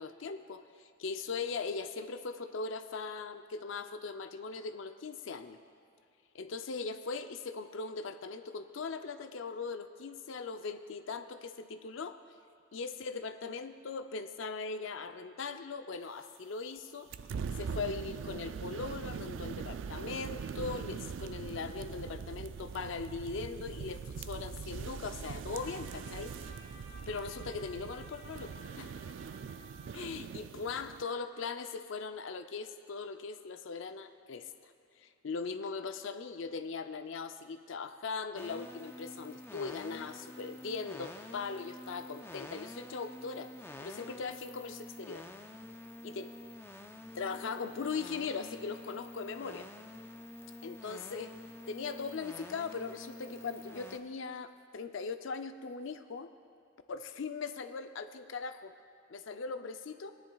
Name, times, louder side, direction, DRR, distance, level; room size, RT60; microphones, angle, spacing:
voice 1, 0.0-5.6 6.3-12.2 12.7-17.1 17.6-26.3 27.1-28.9 29.9-34.5 35.0-43.5 43.8-45.3 46.0-46.3 47.1-49.7 50.6-51.3 51.7-56.3 56.9-58.7 59.1-60.1, left 4 dB, 70° left, 9 dB, 0.5 m, -40 dB
sound 1, 17.1-31.0, right 6 dB, 70° right, 0.3 m, -42 dB
Trumpet, 25.5-30.2, equal, 50° left, 2.9 m, -55 dB
sound 2, 38.3-54.0, left 1 dB, 10° left, 0.3 m, -48 dB
20.0 x 10.0 x 2.3 m, 2.3 s
head